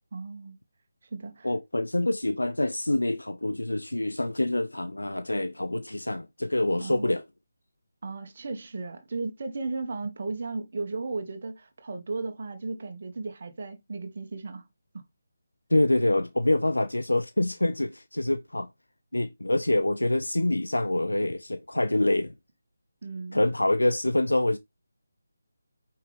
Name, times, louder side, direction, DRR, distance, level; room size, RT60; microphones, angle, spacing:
voice 1, 0.1-0.5 1.1-1.5 6.8-7.1 8.0-14.6 23.0-23.4, right 3 dB, 40° right, 2.0 m, -35 dB
voice 2, 1.4-7.2 15.7-18.7 19.1-22.3 23.3-24.6, left 1 dB, 75° left, 0.7 m, -26 dB
9.2 x 5.6 x 3.5 m
figure-of-eight pair, 155°, 0 cm